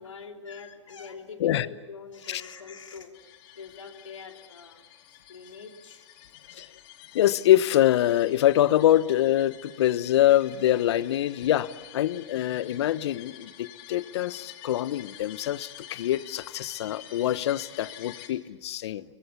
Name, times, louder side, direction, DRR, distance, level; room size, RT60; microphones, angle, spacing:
voice 1, 0.0-3.1 3.5-4.8 5.1-6.1 6.5-6.6, left 5 dB, 85° left, 4 dB, 3.2 m, -44 dB
sound 1, 3.1-18.3, left 12 dB, 45° left, 2.9 m, -48 dB
voice 2, 7.1-19.0, left 13 dB, 60° left, 16 dB, 1.1 m, -24 dB
29.0 x 23.0 x 7.2 m, 1.2 s
hypercardioid pair, 120°, 16 cm